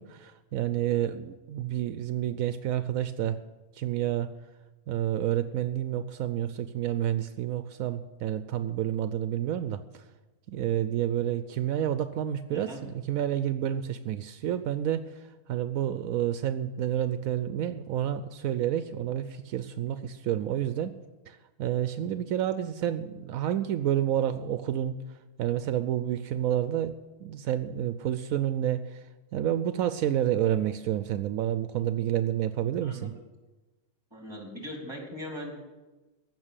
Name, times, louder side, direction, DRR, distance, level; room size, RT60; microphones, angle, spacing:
voice 1, 0.0-3.4 3.7-4.3 4.9-10.0 10.5-20.9 21.3-25.0 25.4-26.9 27.2-29.0 29.3-33.1, right 11 dB, 80° right, 11 dB, 1.0 m, -29 dB
voice 2, 12.5-12.8 32.8-33.1 34.1-35.7, equal, 20° right, 1 dB, 3.0 m, -40 dB
15.0 x 6.1 x 9.0 m, 1.2 s
omnidirectional pair, 1.4 m